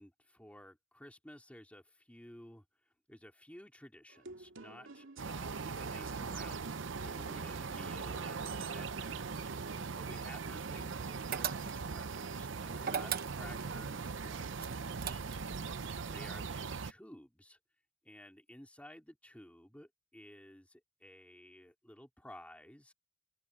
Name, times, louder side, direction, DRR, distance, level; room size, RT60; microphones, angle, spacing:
voice 1, 0.0-2.6 3.1-15.4 16.1-17.6 18.0-22.9, left 1 dB, 5° left, 4.4 m, -55 dB
sound 1, 4.1-9.9, right 3 dB, 85° right, 2.5 m, -52 dB
sound 2, 5.2-16.9, right 5 dB, 70° right, 0.7 m, -40 dB
sound 3, 11.3-12.0 12.8-13.7 14.6-15.6, right 8 dB, 50° right, 1.0 m, -37 dB
open air
head